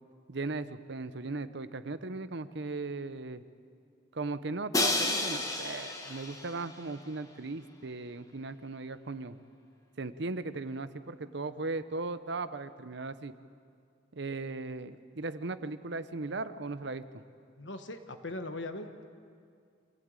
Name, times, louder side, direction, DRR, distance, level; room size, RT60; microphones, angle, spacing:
voice 1, 0.3-3.4 4.1-9.4 10.0-13.3 14.1-17.0, right 3 dB, 60° right, 12 dB, 0.8 m, -37 dB
Crash cymbal, 4.7-6.7, left 2 dB, 20° left, 1.9 m, -31 dB
voice 2, 17.6-19.1, left 2 dB, 65° left, 8 dB, 1.5 m, -40 dB
26.0 x 16.0 x 9.0 m, 2.3 s
head